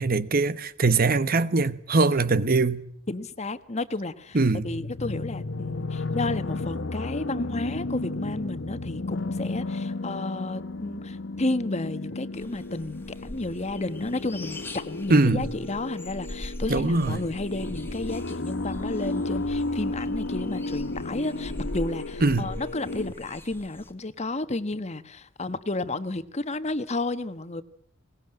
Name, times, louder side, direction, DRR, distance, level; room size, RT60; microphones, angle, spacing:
voice 1, 0.0-2.8 4.3-4.7 15.1-15.5 16.7-17.2 22.2-22.5, right 3 dB, 50° right, 1.2 m, -22 dB
voice 2, 3.1-4.4 4.6-27.6, left 2 dB, 35° left, 1.3 m, -32 dB
sound 1, 4.5-23.1, left 2 dB, 80° left, 1.1 m, -33 dB
sound 2, 12.3-23.9, left 1 dB, 10° left, 2.1 m, -41 dB
22.0 x 19.5 x 9.0 m
head